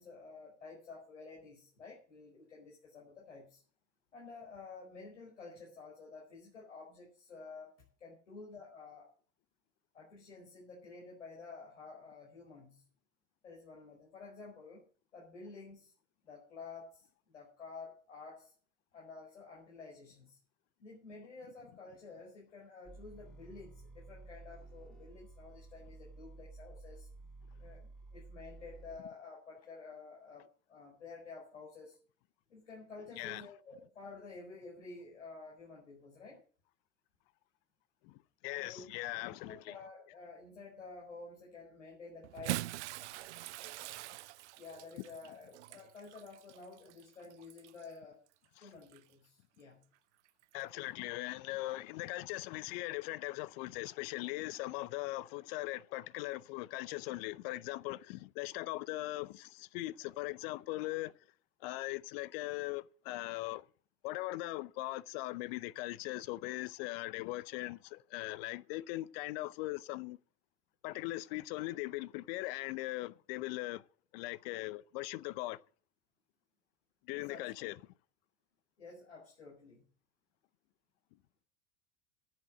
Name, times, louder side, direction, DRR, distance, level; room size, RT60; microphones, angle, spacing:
voice 1, 0.0-3.6 4.1-9.1 9.9-12.8 13.4-14.8 15.1-15.9 16.2-17.1 17.3-18.5 18.9-20.4 20.8-27.1 27.6-32.0 32.5-36.4 38.5-38.8 39.4-42.8 44.6-48.2 48.6-49.8 77.1-77.7 78.8-79.8, left 4 dB, 80° left, 5.0 m, -51 dB
sound 1, 22.9-29.0, right 3 dB, ahead, 2.3 m, -53 dB
voice 2, 33.1-33.4 38.0-39.7 48.6-48.7 50.5-61.1 61.6-63.7 64.0-70.2 70.8-73.8 74.1-75.6 77.0-77.8, left 19 dB, 55° left, 0.7 m, -40 dB
Bathtub (filling or washing) / Splash splatter, 42.2-47.9 48.8-49.0 50.4-50.5, right 17 dB, 70° right, 0.5 m, -43 dB
10.5 x 7.7 x 7.6 m
hypercardioid pair, 85°, 36 cm